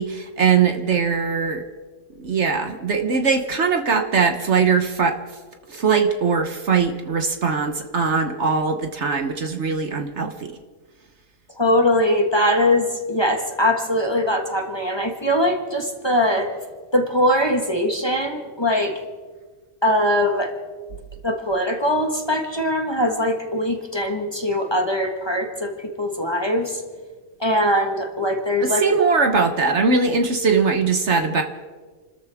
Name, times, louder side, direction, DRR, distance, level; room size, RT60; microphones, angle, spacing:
voice 1, 0.0-1.6 2.2-5.2 5.7-10.5 28.6-31.4, right 5 dB, 55° right, 5 dB, 1.3 m, -21 dB
voice 2, 11.6-16.5 16.9-18.9 19.8-20.5 21.2-26.8 27.4-28.9, left 1 dB, 20° left, 3 dB, 1.4 m, -21 dB
29.0 x 13.5 x 3.6 m, 1.4 s
omnidirectional pair, 1.5 m